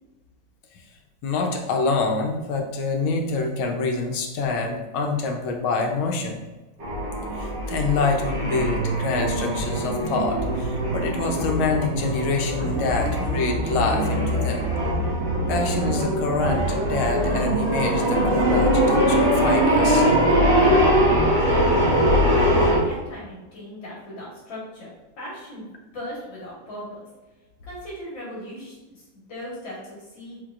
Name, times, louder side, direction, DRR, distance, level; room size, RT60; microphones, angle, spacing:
voice 1, 1.2-6.4 7.3-14.7 15.5-20.1, left 3 dB, 90° left, 2 dB, 1.6 m, -26 dB
sound 1, 6.8-22.8, equal, 35° right, 1.0 m, -22 dB
voice 2, 21.1-24.9 25.2-25.7 25.9-27.0 27.6-30.4, equal, 70° left, -6 dB, 2.1 m, -38 dB
4.6 x 4.3 x 2.4 m, 1.1 s
omnidirectional pair, 2.2 m